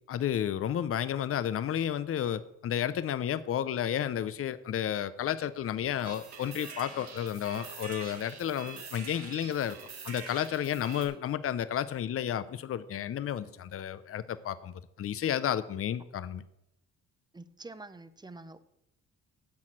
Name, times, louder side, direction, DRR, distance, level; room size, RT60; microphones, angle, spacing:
voice 1, 0.1-9.8 10.0-16.4, left 10 dB, 50° left, 15 dB, 0.7 m, -32 dB
sound 1, 6.0-11.1, right 5 dB, 60° right, 2.3 m, -45 dB
voice 2, 17.3-18.6, right 2 dB, 15° right, 12 dB, 0.8 m, -46 dB
8.5 x 6.4 x 7.5 m, 0.82 s
cardioid pair, 90°, 30 cm